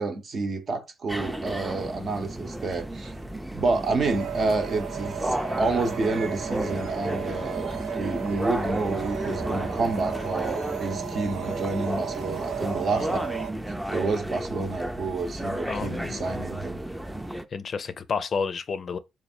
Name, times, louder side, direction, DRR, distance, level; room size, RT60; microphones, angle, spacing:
voice 1, 0.0-3.1 3.5-13.1 13.9-16.8, right 3 dB, 50° right, 0.8 m, -29 dB
sound 1, 1.1-17.4, right 1 dB, 5° right, 0.4 m, -33 dB
sound 2, 4.0-13.5, right 9 dB, 75° right, 0.4 m, -35 dB
voice 2, 12.9-13.3 15.7-16.4 17.5-19.0, left 5 dB, 50° left, 0.4 m, -31 dB
3.2 x 2.5 x 4.2 m
cardioid pair, 75°, 0 cm